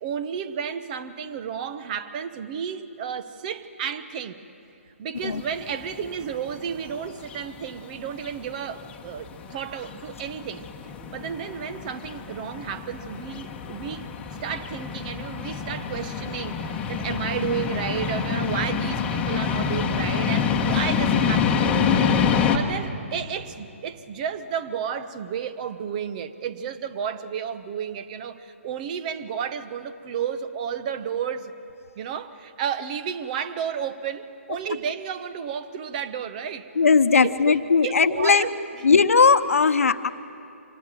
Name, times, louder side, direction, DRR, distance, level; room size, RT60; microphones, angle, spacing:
voice 1, 0.0-4.4 5.0-14.1 14.4-31.5 32.0-36.7 37.2-38.5 38.8-38.9, right 8 dB, 35° right, 12 dB, 1.0 m, -32 dB
sound 1, 5.2-22.6, left 6 dB, 15° left, 1.4 m, -27 dB
voice 2, 36.8-38.5 38.8-40.1, left 5 dB, 80° left, 11 dB, 1.0 m, -18 dB
26.0 x 19.5 x 7.6 m, 2.6 s
hypercardioid pair, 150°, 7 cm